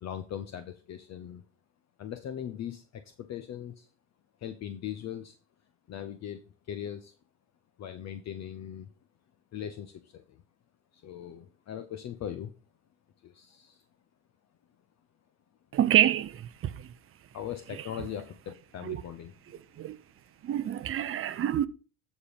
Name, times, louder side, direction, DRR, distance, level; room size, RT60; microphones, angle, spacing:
voice 1, 0.0-1.4 2.0-3.9 4.4-5.4 5.9-7.1 7.8-8.9 9.5-10.4 10.9-12.5 13.2-13.8 17.3-19.4, left 10 dB, 35° left, 0.9 m, -40 dB
voice 2, 15.7-16.9 18.8-19.0 19.8-20.0 20.4-21.7, right 11 dB, 30° right, 0.7 m, -27 dB
13.0 x 4.5 x 5.1 m
hypercardioid pair, 95°, 46 cm